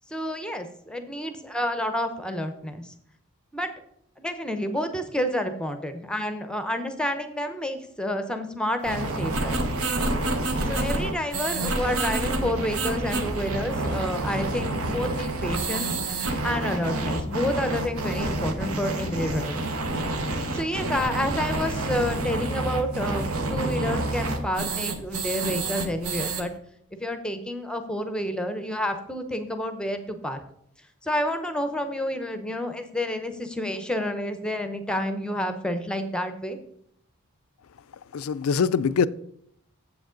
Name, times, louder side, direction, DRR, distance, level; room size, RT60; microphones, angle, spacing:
voice 1, 0.1-2.9 3.5-3.7 4.2-9.7 10.6-19.7 20.5-26.5 27.0-30.4 31.0-36.6, left 1 dB, 5° left, 0.6 m, -29 dB
sound 1, 8.8-26.4, right 2 dB, 80° right, 1.2 m, -28 dB
voice 2, 38.1-39.1, left 6 dB, 75° left, 0.4 m, -23 dB
7.9 x 7.5 x 3.8 m
head